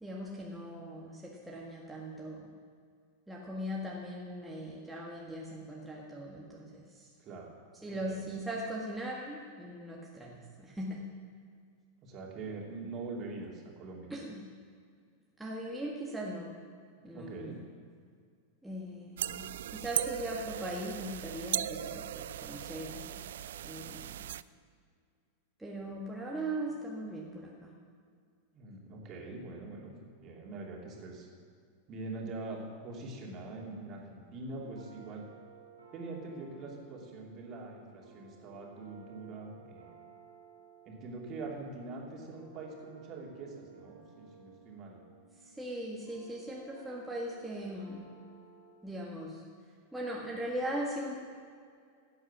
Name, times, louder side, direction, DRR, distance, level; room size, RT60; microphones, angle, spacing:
voice 1, 0.0-2.5 3.3-7.1 7.8-11.0 14.1-14.4 15.4-16.5 17.0-17.6 18.6-19.5 19.7-23.2 23.6-24.1 25.6-27.7 45.5-48.1 48.8-49.4 49.9-51.1, right 1 dB, 5° right, -4 dB, 1.8 m, -39 dB
voice 2, 7.2-7.6 8.1-8.2 12.0-14.1 17.1-17.6 28.5-29.9 30.2-31.3 31.9-35.2 35.9-39.9 40.8-45.0, right 3 dB, 35° right, -1 dB, 2.9 m, -43 dB
sound 1, 19.2-24.4, right 11 dB, 60° right, 0.3 m, -38 dB
sound 2, 34.5-48.7, right 6 dB, 80° right, 2.7 m, -57 dB
16.5 x 8.8 x 6.2 m, 2.2 s
figure-of-eight pair, 90°, 0 cm